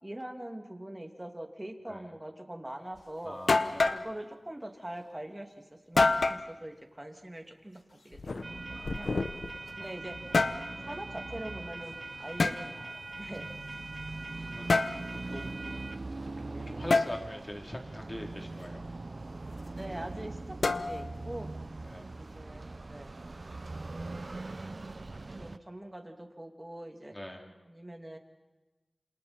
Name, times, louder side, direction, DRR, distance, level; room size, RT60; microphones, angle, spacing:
voice 1, 0.0-3.4 3.9-9.1 9.8-10.2 10.8-13.5 14.3-14.6 19.8-21.5 22.2-23.2 23.8-23.9 25.4-27.2 27.7-28.2, right 1 dB, 20° right, 4 dB, 2.6 m, -43 dB
sound 1, 3.0-3.1 3.5-4.1 6.0-6.5 8.1-9.6 10.1-10.7 12.4-12.6 14.7-15.0 16.9-17.1 20.6-21.2, left 3 dB, 80° left, 0.9 m, -27 dB
voice 2, 3.2-4.0 8.7-9.9 10.7-11.0 13.2-13.3 14.4-14.7 15.0-15.5 16.5-18.8 21.7-22.1 27.1-27.5, left 1 dB, 25° left, 1 dB, 3.5 m, -44 dB
sound 2, 8.4-25.6, right 2 dB, 55° right, 0.7 m, -41 dB
28.0 x 27.0 x 4.5 m, 1.1 s
wide cardioid pair, 50°, 0 cm